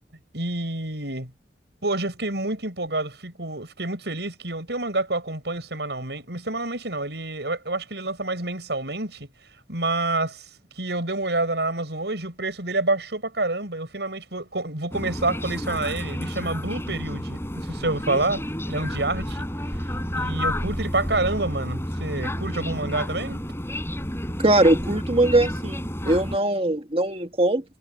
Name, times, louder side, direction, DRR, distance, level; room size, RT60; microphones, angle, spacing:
voice 1, 0.3-1.3 1.8-9.3 9.7-10.5 10.8-19.5 20.1-23.4, right 2 dB, 75° right, 5.7 m, -28 dB
sound 1, 14.9-26.4, left 1 dB, 15° left, 7.4 m, -30 dB
voice 2, 24.4-27.6, right 1 dB, 35° right, 1.7 m, -21 dB
head